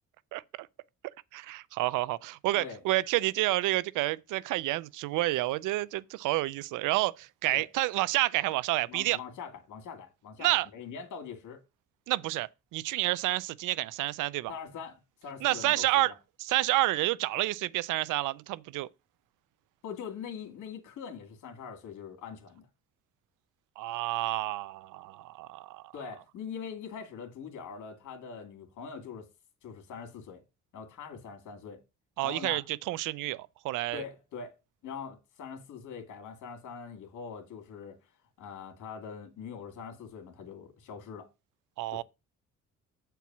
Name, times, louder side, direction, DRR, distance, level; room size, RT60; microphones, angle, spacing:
voice 1, 0.3-0.7 1.0-9.2 10.4-10.7 12.1-14.5 15.4-16.1 16.4-18.9 23.8-25.9 32.2-34.0 41.8-42.0, right 18 dB, 90° right, 0.5 m, -29 dB
voice 2, 8.9-11.6 14.5-14.9 15.2-16.1 19.8-22.6 25.9-29.3 29.6-30.4 30.7-31.8 32.2-32.6 33.9-34.5 34.8-38.0 38.4-41.3 41.9-42.0, left 6 dB, 75° left, 2.3 m, -43 dB
8.1 x 4.6 x 5.9 m
cardioid pair, 90°, 30 cm